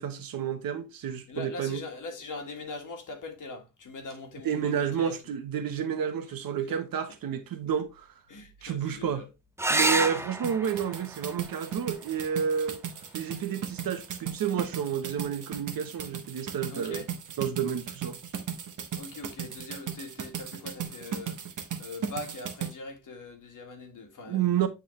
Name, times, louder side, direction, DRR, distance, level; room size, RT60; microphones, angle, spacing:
voice 1, 0.0-1.8 4.4-8.1 8.6-9.3 9.7-12.8 13.1-17.0 17.4-18.2 24.3-24.7, right 8 dB, 80° right, 1.1 m, -30 dB
voice 2, 1.3-5.3 8.3-9.3 16.7-17.1 18.9-21.4 21.8-24.7, left 3 dB, 65° left, 1.8 m, -41 dB
sound 1, 9.6-14.6 16.5-17.1 20.6-20.7 21.0-21.1, right 2 dB, 10° right, 0.5 m, -32 dB
sound 2, 10.4-22.7, right 8 dB, 60° right, 1.2 m, -37 dB
8.9 x 3.7 x 3.1 m
wide cardioid pair, 140°, 34 cm